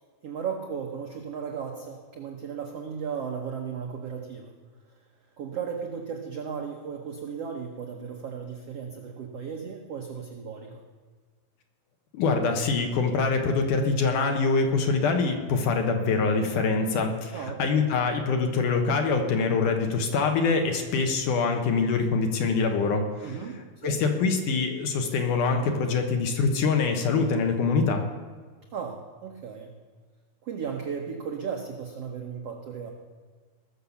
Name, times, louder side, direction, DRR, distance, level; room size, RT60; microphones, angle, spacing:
voice 1, 0.2-4.5 5.4-10.8 17.3-17.8 23.2-24.0 28.7-29.7 30.4-32.9, right 6 dB, 80° right, 2 dB, 1.4 m, -35 dB
voice 2, 12.1-23.4 23.8-28.0, left 4 dB, 65° left, 4 dB, 2.4 m, -24 dB
20.0 x 6.7 x 7.1 m, 1.5 s
omnidirectional pair, 4.4 m